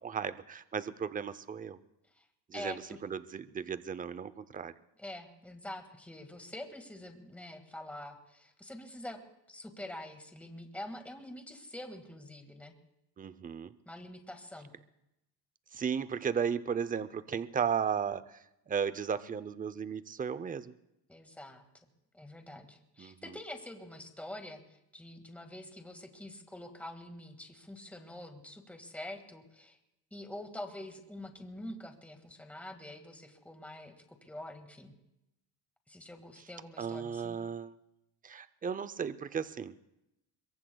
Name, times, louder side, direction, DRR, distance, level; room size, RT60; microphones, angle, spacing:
voice 1, 0.0-1.8 2.5-4.7 13.2-13.7 15.7-18.4 18.7-20.7 23.0-23.1 36.8-37.7 38.2-39.7, right 7 dB, 20° right, 14 dB, 0.6 m, -35 dB
voice 2, 2.5-3.0 5.0-9.2 9.5-12.7 13.9-14.7 21.1-21.6 22.1-24.6 24.9-29.8 30.1-34.9 35.9-37.4, left 1 dB, 5° left, 5 dB, 1.8 m, -46 dB
24.5 x 22.5 x 2.3 m, 0.87 s
cardioid pair, 125°, 42 cm